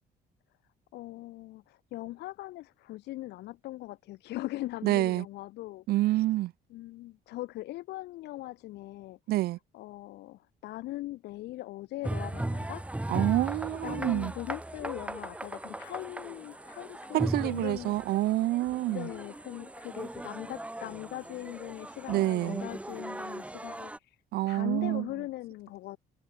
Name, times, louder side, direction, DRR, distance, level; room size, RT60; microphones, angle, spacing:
voice 1, 0.9-6.2 6.7-9.2 9.7-12.8 13.8-18.0 18.9-24.2 24.4-26.0, left 17 dB, 80° left, 4.7 m, -40 dB
voice 2, 4.8-5.2 5.9-6.5 9.3-9.6 13.1-14.3 17.1-19.1 22.1-22.6 24.3-25.1, right 17 dB, 65° right, 0.4 m, -27 dB
sound 1, 12.0-24.0, right 1 dB, 5° right, 1.6 m, -38 dB
cardioid pair, 110°, 17 cm